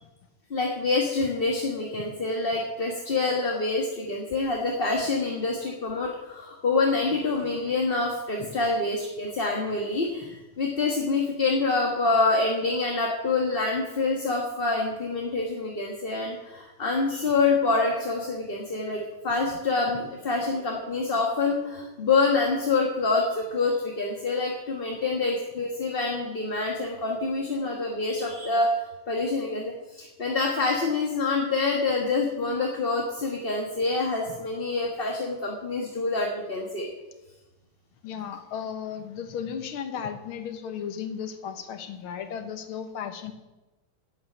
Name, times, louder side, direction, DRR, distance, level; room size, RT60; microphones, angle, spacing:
voice 1, 0.5-28.7 29.1-36.9, left 3 dB, 30° left, 0 dB, 1.5 m, -26 dB
voice 2, 38.0-43.3, left 8 dB, 85° left, 8 dB, 2.0 m, -35 dB
11.5 x 8.6 x 8.0 m, 1.1 s
omnidirectional pair, 2.2 m